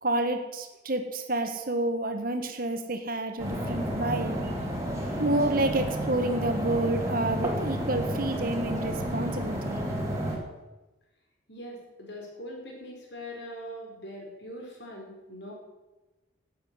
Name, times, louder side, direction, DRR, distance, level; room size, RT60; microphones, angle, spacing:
voice 1, 0.0-4.4 5.2-9.8, right 2 dB, 45° right, 6 dB, 1.6 m, -29 dB
sound 1, 3.4-10.4, equal, 15° right, 2.9 m, -31 dB
voice 2, 11.5-15.5, equal, 55° left, -1 dB, 4.9 m, -42 dB
12.5 x 9.0 x 9.2 m, 1.1 s
head